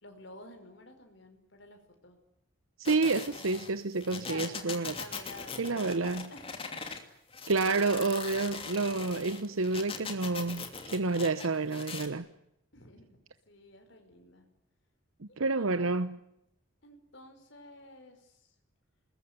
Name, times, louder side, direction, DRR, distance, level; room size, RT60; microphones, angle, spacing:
voice 1, 0.0-2.2 4.2-7.0 12.7-13.2 13.5-14.5 15.3-16.0 16.8-18.5, left 2 dB, 60° left, 5.3 m, -51 dB
sound 1, 2.8-7.0 7.3-12.1, left 5 dB, 25° left, 2.9 m, -41 dB
voice 2, 2.8-4.9 5.6-6.3 7.5-12.2 15.2-16.2, right 3 dB, 85° right, 0.9 m, -29 dB
26.5 x 21.0 x 9.6 m
head